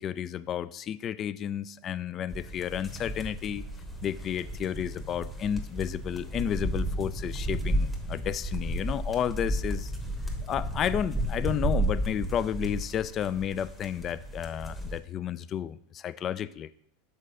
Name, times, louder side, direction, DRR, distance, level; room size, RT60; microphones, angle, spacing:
voice 1, 0.0-3.6 4.0-9.9 10.5-16.7, left 9 dB, 35° left, 16 dB, 0.3 m, -32 dB
sound 1, 2.3-15.0, right 1 dB, 10° left, 1.2 m, -33 dB
6.6 x 4.1 x 4.9 m, 0.70 s
hypercardioid pair, 90°, 0 cm